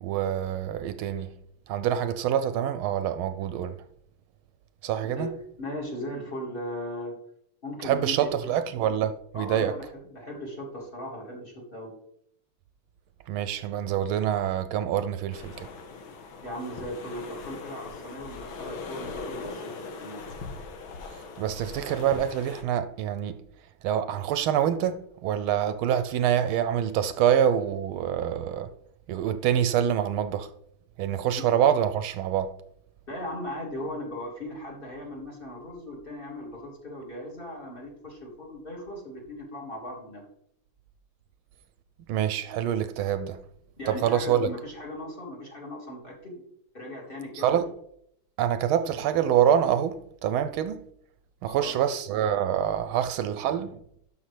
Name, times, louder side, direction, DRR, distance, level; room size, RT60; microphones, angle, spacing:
voice 1, 0.0-1.3 1.7-3.8 4.8-5.3 7.8-9.8 13.3-15.7 21.4-23.3 23.8-28.7 29.1-30.5 31.0-32.5 42.1-43.4 43.9-44.5 47.3-47.7 48.4-50.8 51.4-53.8, right 9 dB, 80° right, 1.3 m, -26 dB
voice 2, 5.6-7.2 7.6-8.6 9.3-11.9 16.4-20.2 31.4-31.5 33.1-40.2 43.8-46.4 46.7-47.6 51.4-51.8, left 1 dB, 25° left, 2.1 m, -38 dB
sound 1, 15.3-22.6, left 4 dB, 70° left, 1.8 m, -40 dB
12.5 x 5.6 x 3.2 m
omnidirectional pair, 2.4 m